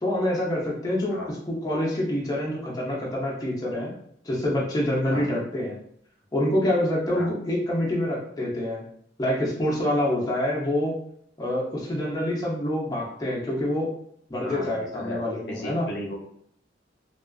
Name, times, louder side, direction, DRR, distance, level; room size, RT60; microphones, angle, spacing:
voice 1, 0.0-3.9 4.2-5.8 6.3-8.8 9.2-10.9 11.4-13.9 14.3-15.9, left 1 dB, 20° left, -4 dB, 0.6 m, -26 dB
voice 2, 14.4-15.2 15.5-16.2, left 1 dB, 70° left, -1 dB, 0.5 m, -35 dB
2.3 x 2.3 x 2.3 m, 0.70 s
head